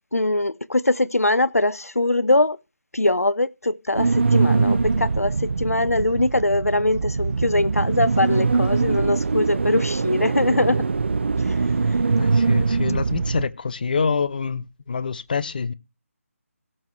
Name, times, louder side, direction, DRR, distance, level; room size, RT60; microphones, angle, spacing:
voice 1, 0.1-2.6 2.9-10.8 11.4-11.6, left 2 dB, 85° left, 0.6 m, -22 dB
sound 1, 3.9-13.5, right 4 dB, 50° right, 0.7 m, -22 dB
voice 2, 12.2-15.7, left 5 dB, 35° left, 0.6 m, -26 dB
17.5 x 6.9 x 3.2 m
figure-of-eight pair, 155°, 8 cm